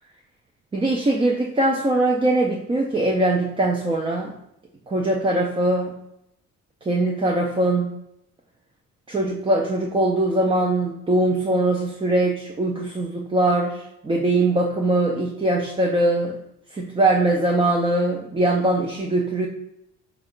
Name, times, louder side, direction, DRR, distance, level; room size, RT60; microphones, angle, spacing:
voice 1, 0.7-4.3 4.9-5.9 6.8-7.9 9.1-16.4 16.7-19.5, right 2 dB, 20° right, 1 dB, 0.4 m, -21 dB
4.3 x 2.3 x 3.7 m, 0.80 s
cardioid pair, 90°, 30 cm